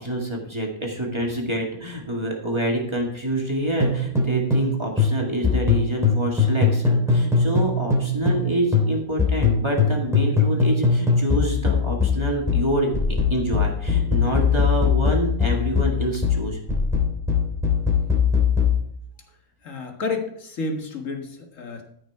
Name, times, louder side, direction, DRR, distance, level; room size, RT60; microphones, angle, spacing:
voice 1, 0.0-16.6, right 1 dB, 20° right, -1 dB, 2.0 m, -27 dB
sound 1, 3.8-4.7 5.0-8.5 8.7-18.8, left 5 dB, ahead, 2.7 m, -20 dB
voice 2, 19.6-21.8, left 3 dB, 65° left, 4 dB, 1.9 m, -30 dB
13.5 x 6.1 x 4.7 m, 0.70 s
omnidirectional pair, 1.5 m